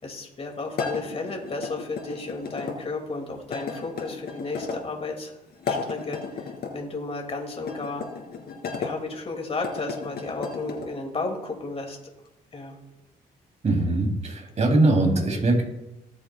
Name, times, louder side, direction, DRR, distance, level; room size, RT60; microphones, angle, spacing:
voice 1, 0.0-5.3 5.6-8.0 8.8-12.0 12.5-12.8, left 3 dB, 35° left, 2 dB, 2.4 m, -33 dB
sound 1, 0.7-2.8 3.5-4.8 5.5-6.7 7.6-8.9 9.5-10.9, left 5 dB, 70° left, 2.7 m, -34 dB
voice 2, 13.6-15.6, right 2 dB, 45° right, 1 dB, 3.2 m, -21 dB
19.0 x 7.3 x 2.4 m, 0.92 s
cardioid pair, 70°, 17 cm